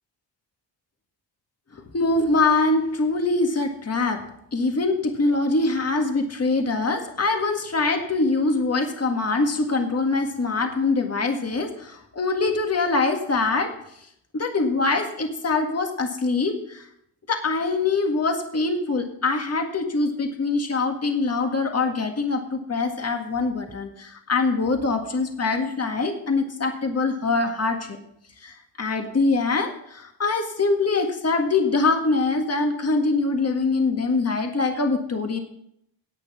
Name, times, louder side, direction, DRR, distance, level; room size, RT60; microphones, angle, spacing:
voice 1, 1.7-4.2 4.5-13.7 14.3-16.9 17.3-28.0 28.4-35.4, left 3 dB, 35° left, 4 dB, 1.7 m, -23 dB
10.5 x 8.3 x 6.0 m, 0.73 s
cardioid pair, 75°, 45 cm